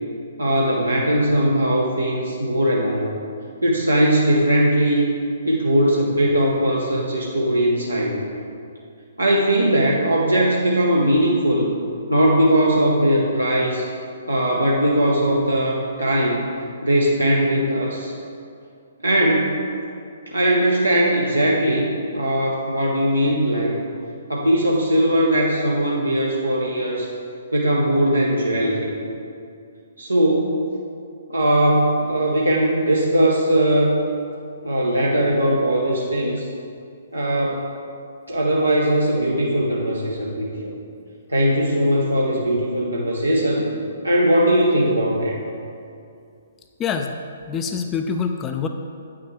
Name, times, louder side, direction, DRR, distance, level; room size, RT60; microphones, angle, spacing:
voice 1, 0.4-3.1 3.6-5.1 5.4-8.3 9.2-11.7 12.1-13.9 14.3-16.4 16.8-18.1 19.0-19.6 20.3-23.8 24.3-27.1 27.5-28.9 30.0-30.6 31.3-34.0 34.6-36.5 37.1-37.6 38.3-40.7 41.3-43.7 44.0-45.4, right 1 dB, 85° right, -3 dB, 1.0 m, -19 dB
voice 2, 46.8-47.1 47.5-48.7, left 6 dB, 20° left, 5 dB, 0.4 m, -25 dB
8.6 x 6.2 x 4.4 m, 2.4 s
figure-of-eight pair, 125°, 0 cm